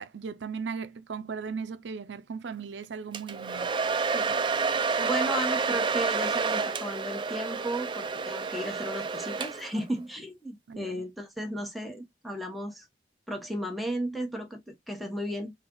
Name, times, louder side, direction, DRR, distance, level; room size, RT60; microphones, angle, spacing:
voice 1, 0.0-3.7 10.7-11.0, right 5 dB, 85° right, 0.5 m, -37 dB
Domestic sounds home sounds, 3.1-9.8, right 5 dB, 30° right, 0.4 m, -29 dB
voice 2, 5.0-12.8 13.3-15.5, equal, ahead, 1.2 m, -34 dB
4.2 x 2.4 x 3.8 m
head